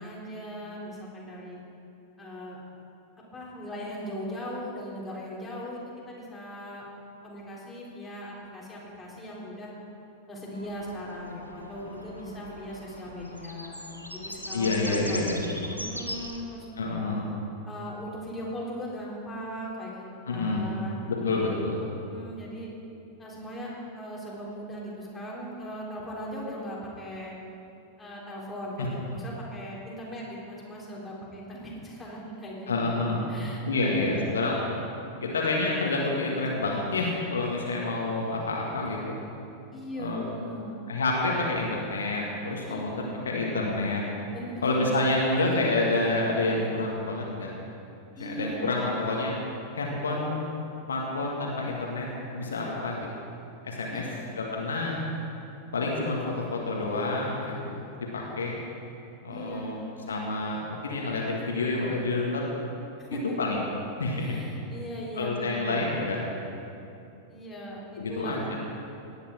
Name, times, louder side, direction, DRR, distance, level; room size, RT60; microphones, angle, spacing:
voice 1, 0.0-1.6 2.2-2.6 3.3-5.8 6.1-6.9 7.2-9.7 10.3-13.8 14.1-16.7 17.7-21.4 21.9-22.7 23.2-27.4 28.0-34.4 39.7-40.8 42.7-43.2 44.3-44.8 48.2-48.8 53.9-54.3 59.3-60.0 63.0-63.4 64.2-66.1 67.3-68.6, equal, 10° left, -5 dB, 3.5 m, -39 dB
sound 1, 10.5-16.4, equal, 90° right, 1.1 m, -40 dB
voice 2, 14.5-15.5 16.8-17.3 20.3-20.8 21.1-21.8 28.8-28.9 32.7-33.2 33.6-34.7 35.2-39.2 40.0-40.3 40.9-42.9 43.3-44.0 44.6-47.5 48.1-49.3 49.7-50.5 50.9-52.1 52.3-53.1 53.6-54.1 54.3-55.0 55.7-56.2 56.5-57.8 58.1-58.5 59.2-59.8 60.1-62.4 63.1-63.7 64.0-64.4 65.2-66.2 68.0-68.5, left 2 dB, 70° left, -2 dB, 1.9 m, -28 dB
18.0 x 9.6 x 4.5 m, 2.7 s
figure-of-eight pair, 90°, 0 cm